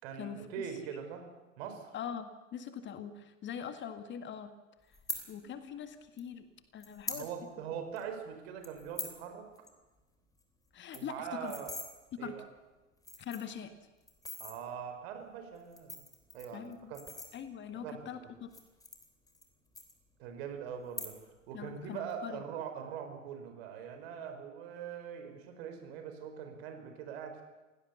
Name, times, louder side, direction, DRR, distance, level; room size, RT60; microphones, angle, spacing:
voice 1, 0.0-1.9 7.1-9.5 10.9-11.7 12.2-12.4 14.4-16.1 16.3-16.6 16.9-17.0 17.7-18.0 20.2-21.2 21.5-27.4, right 7 dB, 55° right, 6 dB, 4.5 m, -42 dB
voice 2, 1.9-4.5 4.9-5.0 5.3-6.5 6.7-7.3 10.7-11.5 12.1-12.3 13.2-13.7 16.5-16.9 17.3-18.5 21.5-22.4, left 8 dB, 30° left, 10 dB, 1.7 m, -42 dB
sound 1, 4.9-5.2 6.2-6.3 6.8-7.2 7.6-7.7 8.0-8.2 8.6-9.2 9.6-9.7 10.0-10.1 10.4-10.5 10.7-11.9 12.6-12.7 13.0-13.6 14.1-14.6 15.6-17.7 18.4-19.5 19.8-20.4 20.8-21.4 21.7-22.1, left 2 dB, 10° left, 3.4 m, -43 dB
29.0 x 17.0 x 7.0 m, 1.1 s
figure-of-eight pair, 85°, 39 cm